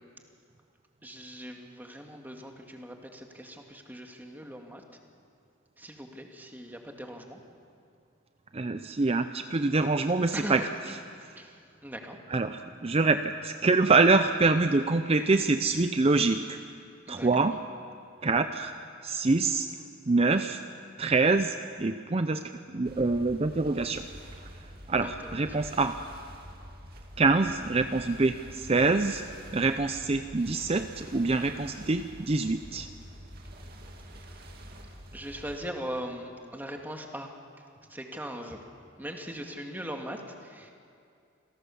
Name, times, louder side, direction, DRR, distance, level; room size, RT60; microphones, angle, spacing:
voice 1, 1.0-4.8 5.8-7.4 10.3-10.7 11.4-11.6 11.8-12.2 17.1-17.3 25.0-25.4 35.1-37.3 37.9-38.6 39.0-40.7, equal, 10° right, 2 dB, 2.0 m, -40 dB
voice 2, 8.5-10.7 12.3-16.6 17.1-17.6 18.2-18.7 19.0-19.7 20.1-20.6 21.0-22.4 22.7-24.1 24.9-26.0 27.2-29.2 29.5-32.9, right 3 dB, 30° right, 9 dB, 0.5 m, -25 dB
sound 1, 22.8-35.6, equal, 50° right, 2.3 m, -47 dB
27.5 x 17.0 x 7.1 m, 2.4 s
head